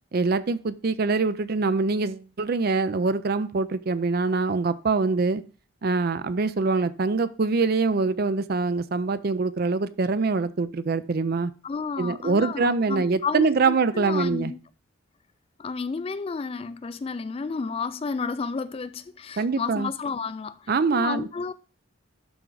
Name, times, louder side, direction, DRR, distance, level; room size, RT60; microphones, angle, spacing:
voice 1, 0.1-5.4 5.8-11.5 12.0-14.5 19.4-19.9 20.7-21.3, right 4 dB, 50° right, 0.4 m, -24 dB
voice 2, 11.6-14.6 15.6-21.5, left 5 dB, 30° left, 0.3 m, -31 dB
12.0 x 4.5 x 3.9 m
head